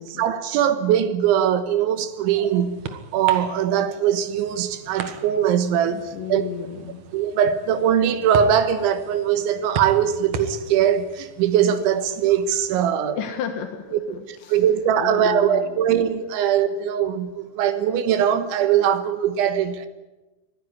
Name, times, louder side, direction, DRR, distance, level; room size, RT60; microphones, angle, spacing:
voice 1, 0.1-6.4 7.1-13.2 14.3-19.9, right 9 dB, 90° right, 3.7 m, -21 dB
sound 1, 1.8-12.9, right 6 dB, 60° right, 1.9 m, -37 dB
voice 2, 5.9-7.0 13.1-14.6 15.0-15.8, left 8 dB, 75° left, 3.8 m, -33 dB
24.5 x 16.5 x 9.8 m
omnidirectional pair, 5.3 m